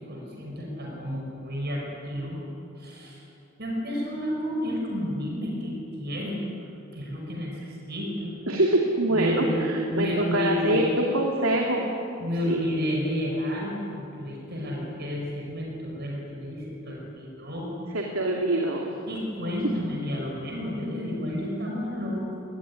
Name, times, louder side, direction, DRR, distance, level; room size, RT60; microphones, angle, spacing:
voice 1, 0.0-2.4 2.8-3.2 3.6-6.4 6.9-8.3 9.1-9.7 9.9-10.8 12.2-17.7 19.1-22.4, equal, 50° right, -1 dB, 5.8 m, -31 dB
voice 2, 8.5-11.9 12.5-12.6 17.9-18.9, right 1 dB, 75° right, 0 dB, 2.8 m, -24 dB
25.5 x 20.0 x 9.8 m, 2.8 s
head